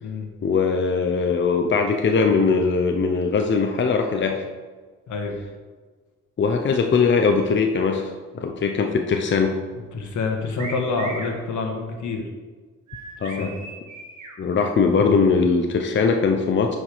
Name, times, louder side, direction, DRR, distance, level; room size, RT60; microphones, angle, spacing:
voice 1, 0.4-4.4 6.4-9.6 13.2-13.5 14.4-16.8, left 5 dB, 40° left, 4 dB, 0.8 m, -21 dB
voice 2, 5.1-5.4 9.9-12.3 13.2-13.6, left 3 dB, 75° left, 3 dB, 1.6 m, -27 dB
sound 1, 10.6-11.4 12.9-14.3, right 2 dB, 75° right, 2.4 m, -37 dB
9.2 x 5.2 x 5.0 m, 1.4 s
cardioid pair, 90°, 30 cm